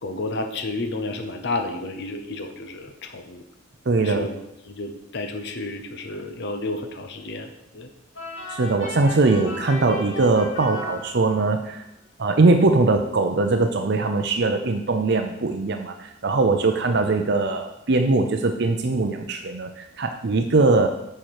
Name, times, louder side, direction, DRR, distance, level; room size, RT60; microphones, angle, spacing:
voice 1, 0.0-3.4 4.0-4.4 4.7-7.5 7.7-7.9, left 2 dB, 55° left, 6 dB, 0.8 m, -31 dB
voice 2, 3.9-4.3 8.5-11.8 12.2-20.9, right 3 dB, 55° right, 5 dB, 0.6 m, -21 dB
sound 1, 8.1-11.7, left 2 dB, 80° left, 2.9 m, -36 dB
8.9 x 5.8 x 4.8 m, 0.83 s
head